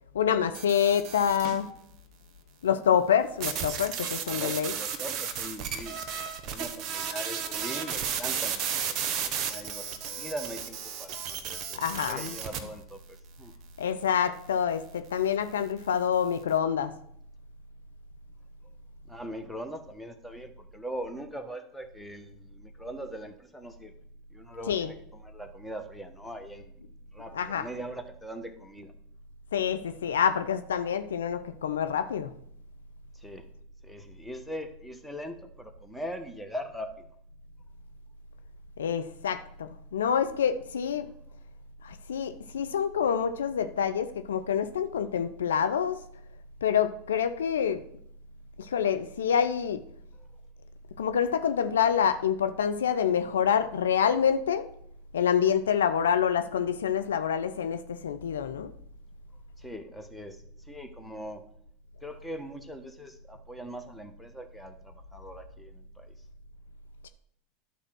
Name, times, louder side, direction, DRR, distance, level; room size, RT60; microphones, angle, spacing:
voice 1, 0.1-1.7 2.6-4.7 11.8-12.4 13.8-16.9 24.7-24.9 27.3-27.7 29.5-32.3 38.8-41.1 41.8-46.0 46.6-47.8 48.6-49.8 51.0-54.7 55.1-58.7 67.0-67.1, left 8 dB, 80° left, 10 dB, 0.5 m, -27 dB
sound 1, 0.5-1.6 3.4-12.6, right 7 dB, 45° right, 1.3 m, -33 dB
voice 2, 4.2-8.6 9.2-13.0 13.4-13.5 19.1-23.9 24.3-26.7 27.1-28.9 33.2-33.4 33.8-36.9 50.2-50.3 59.6-60.4 60.7-61.4 62.0-66.1, equal, 5° left, 5 dB, 1.3 m, -41 dB
11.0 x 4.4 x 6.2 m, 0.69 s
hypercardioid pair, 85°, 0 cm